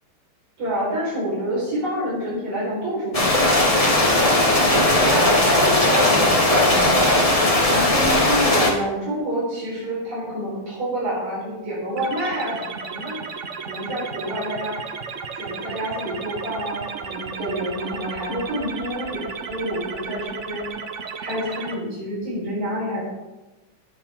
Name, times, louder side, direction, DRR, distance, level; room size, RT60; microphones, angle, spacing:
voice 1, 0.6-6.9 7.7-13.2 13.7-14.8 15.3-20.7 21.2-23.0, right 1 dB, 80° right, -7 dB, 5.4 m, -28 dB
sound 1, 3.1-8.7, left 1 dB, 20° left, 1.2 m, -18 dB
sound 2, 12.0-21.7, right 5 dB, 60° right, 0.8 m, -34 dB
18.5 x 7.2 x 3.6 m, 1.1 s
omnidirectional pair, 2.4 m